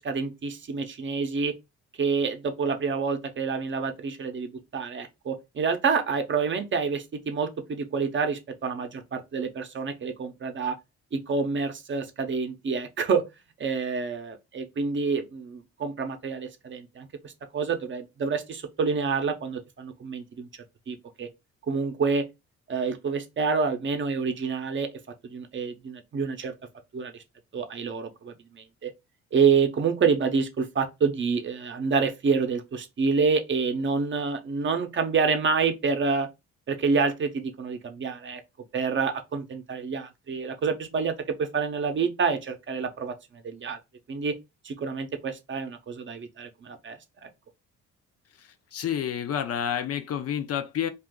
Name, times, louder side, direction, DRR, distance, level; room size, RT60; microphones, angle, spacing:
voice 1, 0.0-1.5 2.0-10.8 11.1-13.2 13.6-20.5 20.9-21.3 21.7-22.3 22.7-24.9 25.2-26.5 26.9-27.2 27.5-28.9 29.3-36.3 36.7-38.4 38.7-43.1 43.4-43.8 44.1-44.4 44.6-47.3, right 5 dB, 40° right, 0.6 m, -28 dB
voice 2, 48.4-50.9, left 9 dB, 55° left, 0.5 m, -29 dB
2.5 x 2.4 x 3.6 m
cardioid pair, 90°, 30 cm